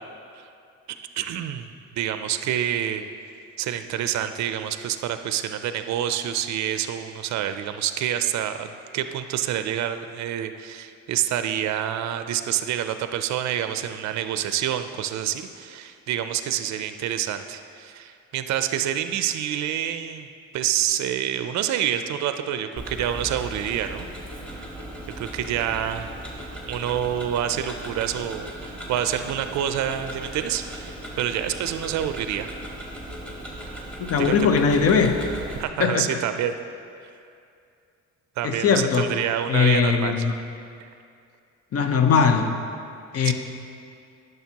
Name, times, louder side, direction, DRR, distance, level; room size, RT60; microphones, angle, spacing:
voice 1, 0.9-1.7 2.0-3.1 3.6-8.7 8.9-20.3 20.5-24.1 25.2-26.1 26.7-32.5 34.2-34.3 35.6-36.5 38.4-40.1 43.2-43.3, right 10 dB, 65° right, 9 dB, 0.4 m, -27 dB
Tick-tock, 22.8-35.6, right 1 dB, 5° left, 1.6 m, -37 dB
voice 2, 34.0-35.1 35.8-36.2 38.4-39.1 39.5-40.3 41.7-42.6 43.1-43.3, left 6 dB, 50° left, 6 dB, 0.7 m, -20 dB
10.0 x 6.5 x 2.8 m, 2.4 s
cardioid pair, 90°, 30 cm